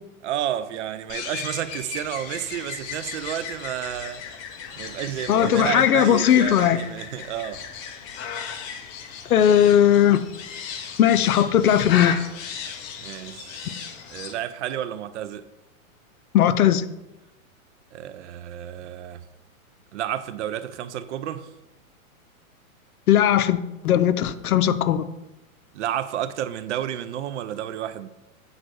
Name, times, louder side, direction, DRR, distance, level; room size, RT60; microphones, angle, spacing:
voice 1, 0.2-4.2 4.8-7.6 13.0-15.4 17.9-19.2 19.9-21.5 25.7-28.1, right 11 dB, 55° right, 0.6 m, -31 dB
sound 1, 1.1-14.3, left 7 dB, 30° left, 0.8 m, -35 dB
voice 2, 5.3-6.8 9.3-10.2 11.0-12.2 16.3-16.8 23.1-23.6 23.8-25.1, left 10 dB, 90° left, 0.7 m, -18 dB
7.8 x 4.0 x 6.2 m
hypercardioid pair, 140°, 43 cm